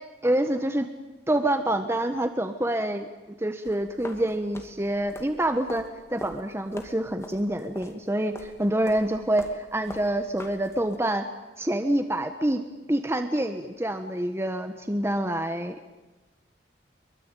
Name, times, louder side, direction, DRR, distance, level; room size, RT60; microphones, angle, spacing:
voice 1, 0.2-0.9 1.3-3.1 3.4-11.3 11.6-12.6 12.9-15.7, right 1 dB, 15° right, 7 dB, 1.2 m, -27 dB
sound 1, 3.6-11.0, left 1 dB, 15° left, 2.4 m, -44 dB
24.0 x 23.5 x 9.1 m, 1.1 s
head